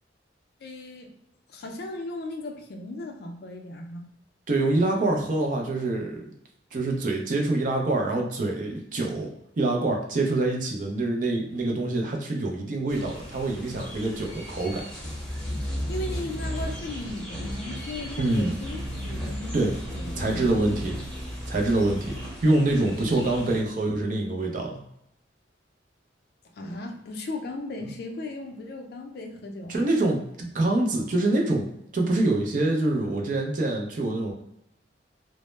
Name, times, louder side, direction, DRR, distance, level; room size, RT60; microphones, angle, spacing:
voice 1, 0.6-1.1 1.5-4.1 15.6-20.6 22.8-23.3 26.5-29.9, left 2 dB, 55° left, 3 dB, 0.4 m, -37 dB
voice 2, 4.5-6.3 6.7-9.3 9.6-14.8 18.2-18.5 19.5-19.7 20.1-21.0 21.5-24.8 29.7-34.3, right 2 dB, 45° right, 1 dB, 0.4 m, -25 dB
sound 1, 12.9-23.6, equal, 5° left, 0.7 m, -35 dB
2.0 x 2.0 x 3.1 m, 0.77 s
head